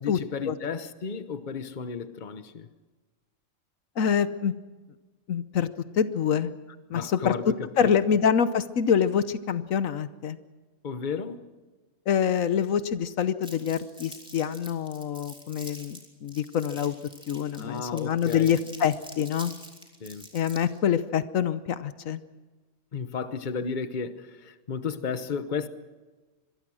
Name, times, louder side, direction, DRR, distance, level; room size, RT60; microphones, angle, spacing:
voice 1, 0.0-2.7 6.9-7.9 10.8-11.5 17.6-18.5 20.0-20.3 22.9-25.7, left 5 dB, 40° left, 1.1 m, -33 dB
voice 2, 4.0-4.5 5.3-5.7 5.9-6.5 6.9-7.3 7.8-10.4 12.1-16.9 17.3-19.5 20.3-22.2, left 8 dB, 80° left, 1.3 m, -26 dB
Crumpling crinkling, 13.4-20.8, equal, 5° right, 3.5 m, -46 dB
25.5 x 22.0 x 6.3 m
omnidirectional pair, 1.4 m